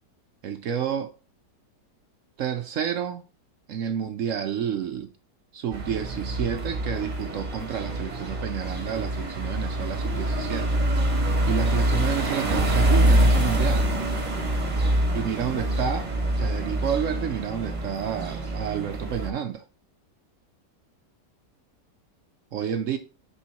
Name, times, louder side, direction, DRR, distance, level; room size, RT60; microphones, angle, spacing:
voice 1, 0.4-1.1 2.4-3.2 3.7-5.1 5.5-10.8 11.5-13.9 15.1-16.1 16.4-19.7 22.5-23.0, right 8 dB, 75° right, 0.7 m, -30 dB
sound 1, 5.7-19.3, right 1 dB, 30° right, 1.0 m, -25 dB
9.7 x 3.8 x 2.9 m
omnidirectional pair, 1.9 m